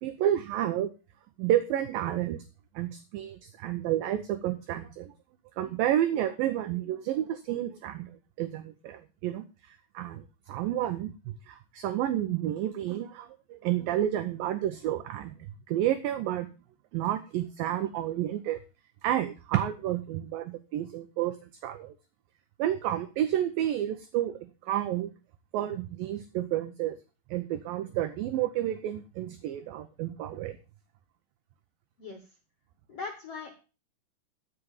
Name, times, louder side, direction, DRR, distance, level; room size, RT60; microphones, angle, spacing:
voice 1, 0.0-0.9 1.4-2.4 2.8-5.1 5.6-15.4 15.7-16.5 16.9-18.6 19.0-21.9 22.6-25.1 25.5-27.0 27.3-30.6, right 12 dB, 75° right, 9 dB, 2.2 m, -30 dB
voice 2, 32.9-33.6, left 4 dB, 65° left, 5 dB, 1.5 m, -39 dB
14.5 x 5.1 x 7.2 m, 0.33 s
omnidirectional pair, 4.8 m